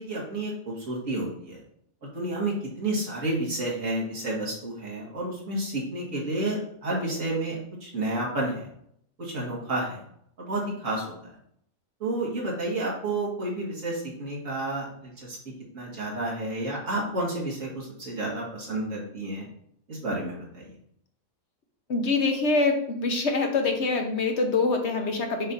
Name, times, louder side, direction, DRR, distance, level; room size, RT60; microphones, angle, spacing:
voice 1, 0.0-1.6 2.0-8.7 9.2-10.0 10.4-11.0 12.0-15.4 15.7-19.5 19.9-20.7, right 1 dB, 75° right, -4 dB, 2.4 m, -30 dB
voice 2, 21.9-25.5, left 3 dB, 60° left, 3 dB, 1.2 m, -25 dB
7.1 x 2.8 x 5.2 m, 0.69 s
omnidirectional pair, 1.4 m